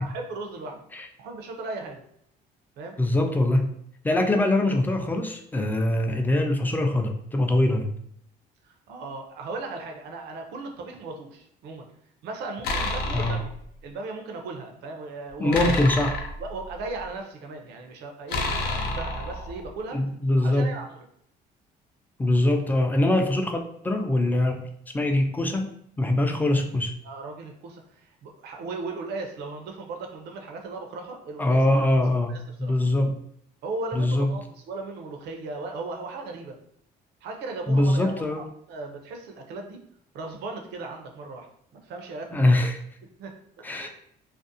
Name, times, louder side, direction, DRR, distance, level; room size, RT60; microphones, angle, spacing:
voice 1, 0.0-0.8 1.2-2.0 2.8-3.0 8.6-11.9 12.2-13.5 13.8-15.6 16.4-20.0 20.4-21.0 27.0-31.9 32.3-32.7 33.6-36.6 37.2-39.8 40.1-41.5 41.7-42.5 43.2-43.9, right 3 dB, 75° right, 3 dB, 0.5 m, -37 dB
voice 2, 3.0-3.7 4.0-7.9 13.1-13.4 15.4-16.2 19.9-20.7 22.2-24.7 24.9-25.7 26.0-26.9 31.4-33.2 33.9-34.4 37.7-38.5 42.3-42.8 43.6-43.9, left 1 dB, 10° left, 5 dB, 0.3 m, -23 dB
sound 1, 12.6-13.5 15.5-17.0 18.3-19.7, left 2 dB, 75° left, 0.5 m, -29 dB
2.5 x 2.0 x 2.6 m, 0.70 s
cardioid pair, 110°, 17 cm